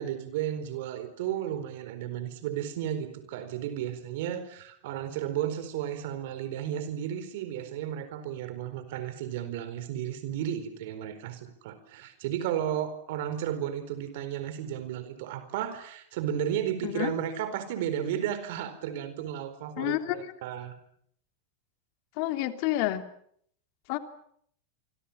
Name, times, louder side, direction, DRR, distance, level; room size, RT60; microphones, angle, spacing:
voice 1, 0.0-20.7, right 10 dB, 65° right, 11 dB, 4.4 m, -33 dB
voice 2, 19.8-20.3 22.2-23.0 23.9-24.0, left 15 dB, 55° left, 8 dB, 3.0 m, -29 dB
27.5 x 25.0 x 7.3 m, 0.67 s
hypercardioid pair, 105°, 0 cm